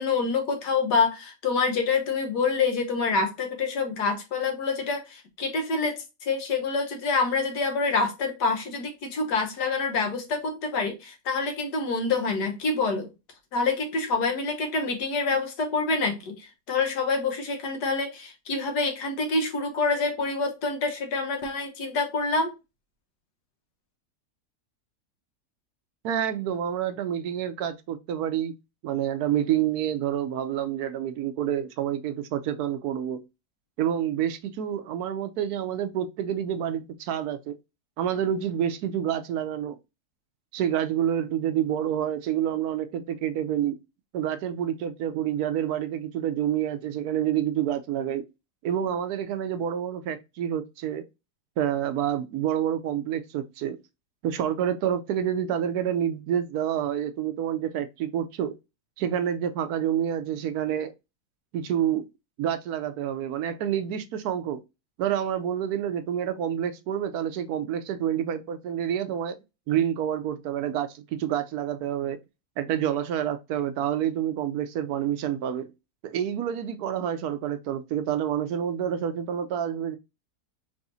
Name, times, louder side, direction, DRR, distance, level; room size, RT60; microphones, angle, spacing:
voice 1, 0.0-13.1 13.5-22.5, left 4 dB, 80° left, 1.6 m, -27 dB
voice 2, 26.0-28.5 28.8-33.2 33.8-37.6 38.0-39.8 40.5-43.8 44.1-48.2 48.6-51.0 51.6-53.8 54.2-58.5 59.0-60.9 61.5-62.0 62.4-64.6 65.0-69.4 69.7-72.2 72.6-75.7 76.0-80.0, right 10 dB, 75° right, 1.1 m, -28 dB
4.8 x 3.4 x 2.6 m
omnidirectional pair, 1.7 m